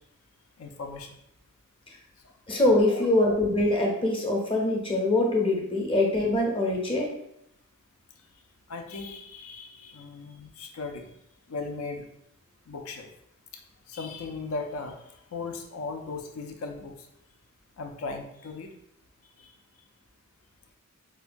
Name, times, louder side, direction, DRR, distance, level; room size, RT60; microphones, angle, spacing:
voice 1, 0.6-1.1 2.9-3.0 8.7-11.1 11.5-12.1 12.7-13.1 13.9-14.9 15.3-16.9 17.8-18.7 19.4-19.5, left 3 dB, 70° left, 5 dB, 0.5 m, -37 dB
voice 2, 2.5-7.1, left 1 dB, 25° left, -1 dB, 0.7 m, -24 dB
4.5 x 2.2 x 2.5 m, 0.77 s
head